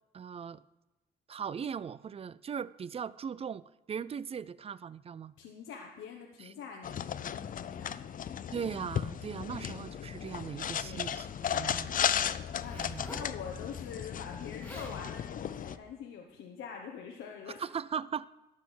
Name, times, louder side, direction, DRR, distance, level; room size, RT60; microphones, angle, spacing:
voice 1, 0.1-0.6 1.3-5.3 6.4-6.5 8.5-12.0 12.7-13.1 17.6-18.3, right 7 dB, 30° right, 19 dB, 0.3 m, -39 dB
voice 2, 5.4-8.4 9.4-10.3 10.8-11.3 12.0-17.6, left 6 dB, 85° left, 1 dB, 1.1 m, -45 dB
sound 1, 6.8-15.8, left 9 dB, 45° left, 0.5 m, -35 dB
Zipper (clothing), 12.5-13.3 14.3-14.4 14.6-15.0 15.7-15.9, equal, 5° left, 2.7 m, -46 dB
12.0 x 6.4 x 6.2 m, 1.0 s
cardioid pair, 90°, 20 cm